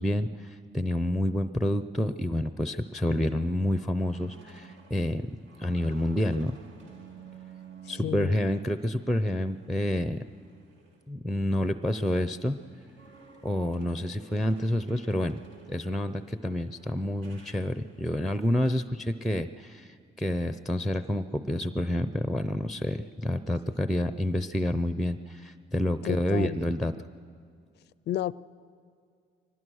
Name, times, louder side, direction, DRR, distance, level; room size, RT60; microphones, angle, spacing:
voice 1, 0.0-6.6 7.9-10.2 11.1-12.6 13.4-15.4 15.7-26.9, left 1 dB, ahead, 0.6 m, -28 dB
sound 1, 2.6-11.0 11.4-18.2, right 5 dB, 75° right, 2.5 m, -53 dB
voice 2, 7.9-8.3 26.1-26.6 28.1-28.3, left 12 dB, 60° left, 0.4 m, -31 dB
23.0 x 18.5 x 6.4 m
cardioid pair, 90°, 20 cm